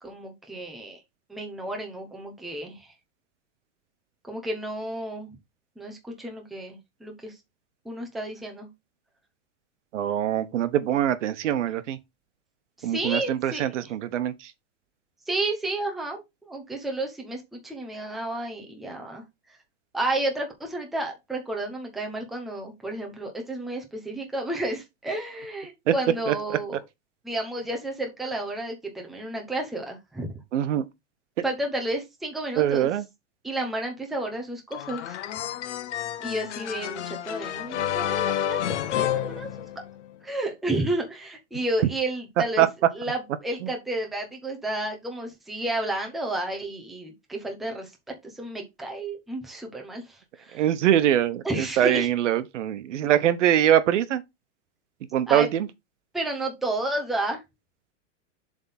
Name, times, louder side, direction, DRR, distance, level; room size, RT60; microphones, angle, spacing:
voice 1, 0.0-1.0 1.3-2.9 4.3-5.4 5.8-7.4 7.8-8.7 12.8-13.7 15.3-19.2 19.9-26.8 27.2-30.3 31.4-32.9 33.4-35.2 36.2-38.6 38.9-39.5 40.2-42.6 42.9-47.9 48.2-50.6 51.4-52.1 55.3-55.5 56.1-57.4, right 1 dB, ahead, 0.7 m, -31 dB
voice 2, 9.9-12.0 12.8-14.5 25.9-26.0 26.3-26.4 30.5-30.8 32.6-33.0 42.6-42.7 50.5-54.2 55.1-55.7, right 11 dB, 80° right, 1.0 m, -23 dB
sound 1, 34.7-40.1, left 11 dB, 70° left, 1.1 m, -30 dB
7.5 x 3.6 x 4.1 m
supercardioid pair, 170°, 36 cm